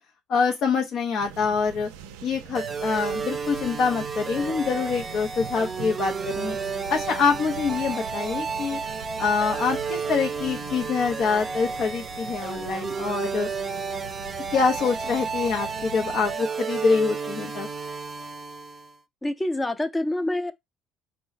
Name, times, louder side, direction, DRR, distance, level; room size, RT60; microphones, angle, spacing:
voice 1, 0.3-1.9 2.2-6.6 6.9-8.8 9.2-13.5 14.5-17.7, left 5 dB, 60° left, 0.7 m, -25 dB
sound 1, 1.2-16.4, right 8 dB, 85° right, 0.4 m, -42 dB
sound 2, 2.6-19.0, right 5 dB, 30° right, 0.6 m, -32 dB
voice 2, 19.2-20.5, left 1 dB, 15° left, 0.7 m, -26 dB
4.7 x 2.3 x 4.0 m
supercardioid pair, 70°, 0 cm